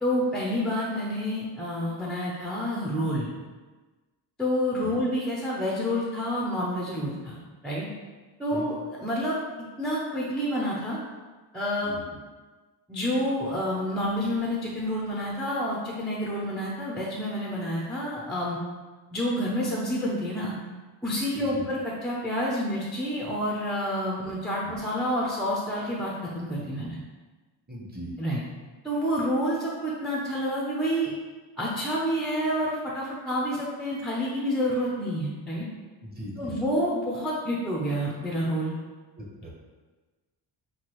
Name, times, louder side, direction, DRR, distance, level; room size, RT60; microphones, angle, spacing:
voice 1, 0.0-3.3 4.4-7.9 8.4-9.4 9.8-11.0 11.5-12.0 12.9-18.6 19.1-20.5 21.0-27.0 28.2-28.4 28.8-31.1 31.6-35.7 36.4-38.8, equal, ahead, -5 dB, 0.4 m, -28 dB
voice 2, 27.7-28.1 36.0-36.5 39.2-39.5, equal, 20° right, -3 dB, 0.7 m, -40 dB
6.0 x 2.7 x 2.9 m, 1.3 s
wide cardioid pair, 170°, 47 cm